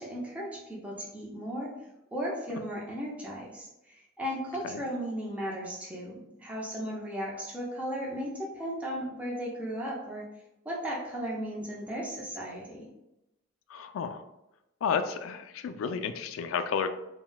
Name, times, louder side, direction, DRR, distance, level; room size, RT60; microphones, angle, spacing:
voice 1, 0.0-1.7 2.1-10.3 10.6-12.9, equal, 5° right, -4 dB, 0.5 m, -36 dB
voice 2, 13.7-14.2 14.8-16.9, left 6 dB, 90° left, 10 dB, 0.3 m, -32 dB
3.9 x 2.1 x 2.2 m, 0.89 s
head